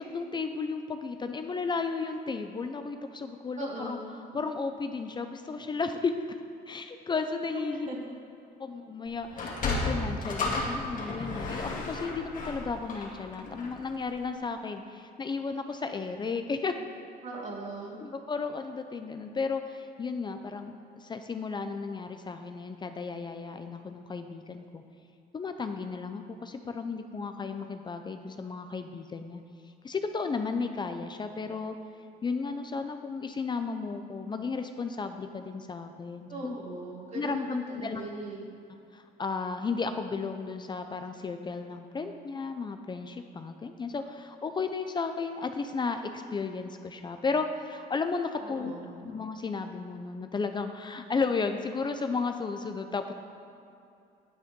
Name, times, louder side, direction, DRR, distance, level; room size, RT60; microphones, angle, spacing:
voice 1, 0.0-6.1 6.7-7.9 8.6-16.7 18.0-24.8 25.3-29.4 29.8-31.8 32.2-36.6 37.1-38.0 38.9-48.7 49.0-53.1, left 4 dB, 25° left, 7 dB, 0.6 m, -34 dB
voice 2, 3.6-4.2 7.7-8.0 17.2-18.0 36.3-38.4 48.4-49.0, right 2 dB, 45° right, -3 dB, 2.8 m, -39 dB
Sliding door, 9.3-13.9, left 3 dB, 50° left, 2.3 m, -33 dB
9.6 x 9.0 x 5.3 m, 2.6 s
cardioid pair, 110°, 17 cm